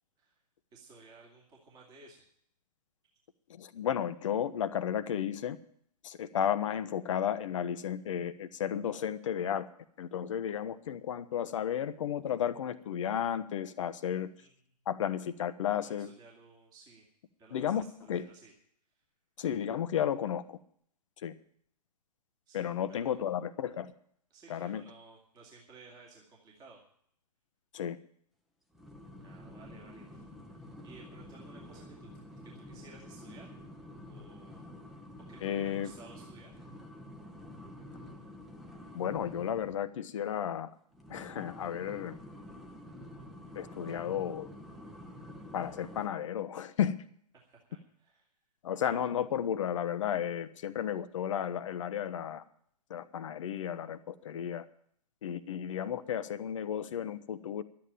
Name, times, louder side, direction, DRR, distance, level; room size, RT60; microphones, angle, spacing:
voice 1, 0.7-2.2 3.8-3.9 14.4-14.6 15.8-17.0 17.4-18.5 22.5-22.7 23.0-23.2 24.3-26.8 29.2-32.1 32.5-33.5 34.0-34.7 35.3-36.6 47.3-48.3, right 3 dB, 20° right, -2 dB, 2.5 m, -56 dB
voice 2, 3.5-5.6 6.0-9.7 10.0-14.3 14.9-16.1 17.5-17.8 18.1-18.3 19.4-20.6 21.2-21.3 22.5-23.9 24.5-24.8 27.7-28.0 35.4-35.9 38.9-40.7 41.1-42.2 43.5-44.5 45.5-47.0 48.6-52.4 52.9-54.6 55.2-57.6, left 9 dB, 50° left, 13 dB, 0.9 m, -33 dB
sound 1, 28.7-39.9 40.9-46.1, left 1 dB, ahead, 1.1 m, -49 dB
12.0 x 8.8 x 9.0 m, 0.66 s
figure-of-eight pair, 125°, 21 cm